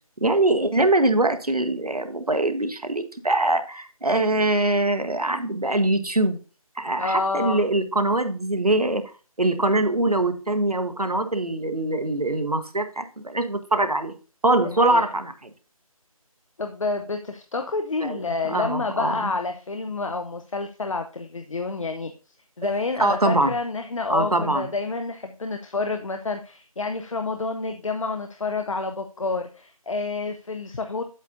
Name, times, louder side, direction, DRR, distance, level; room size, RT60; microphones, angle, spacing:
voice 1, 0.2-6.4 6.8-9.1 9.4-14.1 14.4-15.5 18.0-18.2 18.5-19.3 23.0-23.5 24.1-24.7, right 2 dB, 85° right, 8 dB, 1.1 m, -23 dB
voice 2, 7.0-7.6 14.6-15.1 16.6-22.1 22.6-31.0, left 3 dB, 60° left, 6 dB, 0.7 m, -29 dB
8.1 x 7.7 x 2.5 m, 0.35 s
figure-of-eight pair, 155°, 19 cm